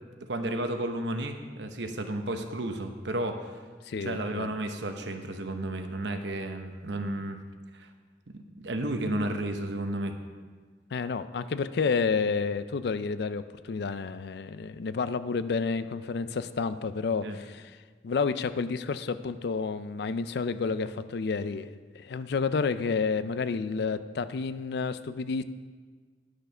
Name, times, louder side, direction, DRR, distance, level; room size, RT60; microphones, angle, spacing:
voice 1, 0.3-3.6 4.0-7.4 7.7-7.9 8.3-10.1 17.2-17.4, right 1 dB, 85° right, 6 dB, 0.9 m, -32 dB
voice 2, 3.9-4.5 10.9-17.7 18.0-25.4, left 5 dB, 65° left, 13 dB, 0.4 m, -30 dB
10.5 x 6.6 x 5.5 m, 1.5 s
head